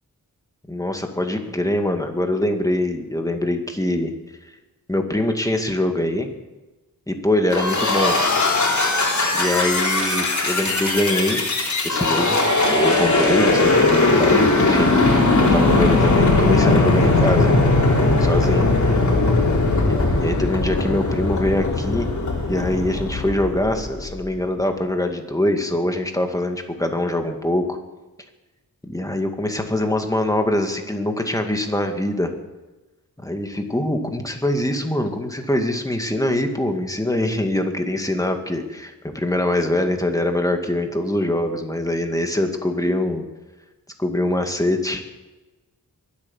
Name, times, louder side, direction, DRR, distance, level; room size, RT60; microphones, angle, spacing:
voice 1, 0.7-4.1 4.9-6.3 7.1-8.2 9.3-11.4 11.8-12.4 12.7-15.0 15.4-17.5 18.2-18.7 20.2-22.1 22.5-27.8 28.8-32.3 33.2-43.2 44.0-45.0, left 1 dB, 10° left, 4 dB, 2.1 m, -23 dB
sound 1, 7.5-24.1, left 2 dB, 55° left, 3.7 m, -19 dB
23.0 x 8.4 x 7.3 m, 1.1 s
wide cardioid pair, 90°, 35 cm